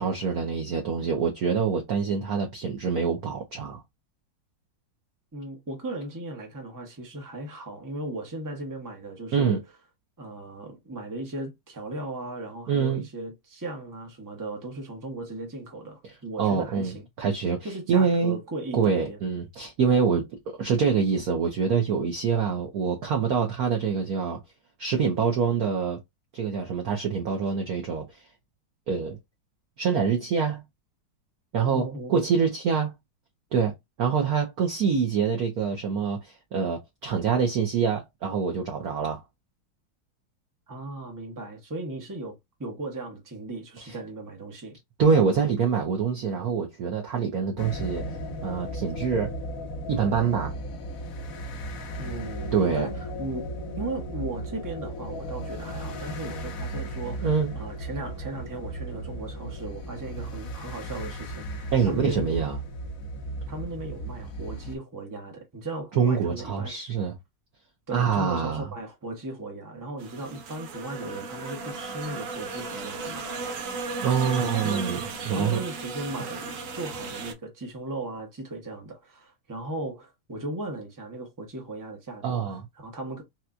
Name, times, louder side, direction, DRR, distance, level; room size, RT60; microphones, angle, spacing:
voice 1, 0.0-3.8 9.3-9.6 12.7-13.0 16.4-18.4 18.7-24.4 24.8-26.0 26.3-28.2 28.9-29.2 29.8-30.6 31.5-32.9 33.5-39.2 45.0-48.1 48.4-49.4 49.9-50.5 52.5-52.9 57.2-57.5 61.7-62.6 66.0-67.1 67.9-68.7 74.0-75.0 75.3-75.6 82.2-82.6, right 6 dB, 60° right, 1.0 m, -25 dB
voice 2, 5.3-9.6 10.2-17.0 17.6-19.2 31.7-32.2 40.7-44.8 52.0-53.5 53.7-62.5 63.5-66.9 67.9-73.4 74.2-74.8 75.3-82.4 82.7-83.2, right 2 dB, 25° right, 0.4 m, -37 dB
sound 1, 47.6-64.8, right 1 dB, 65° left, 0.8 m, -36 dB
sound 2, 70.0-77.3, right 4 dB, 90° right, 0.7 m, -35 dB
4.3 x 2.3 x 2.5 m
omnidirectional pair, 2.3 m